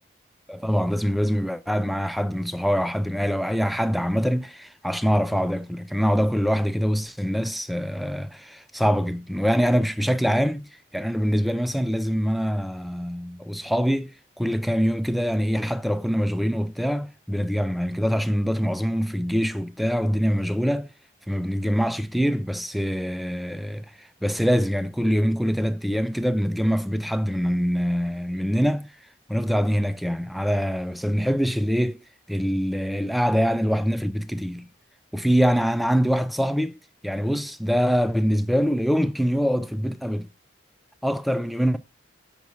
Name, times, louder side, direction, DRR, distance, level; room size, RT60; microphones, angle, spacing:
voice 1, 0.5-20.9 21.3-28.9 29.3-32.0 32.3-34.6 35.1-36.8 37.0-40.3 41.0-41.8, equal, ahead, 0.3 m, -24 dB
7.0 x 5.9 x 2.8 m
head